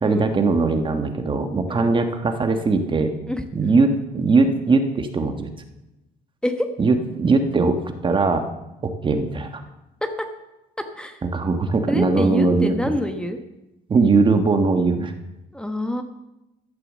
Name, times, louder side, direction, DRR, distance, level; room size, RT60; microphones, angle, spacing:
voice 1, 0.0-3.1 3.5-5.5 6.8-8.5 8.8-9.6 11.2-12.7 13.9-15.1, right 3 dB, 30° right, 7 dB, 1.3 m, -20 dB
voice 2, 11.9-13.4 15.5-16.0, left 1 dB, 5° left, 6 dB, 1.1 m, -26 dB
13.0 x 6.8 x 7.3 m, 0.94 s
cardioid pair, 110°, 17 cm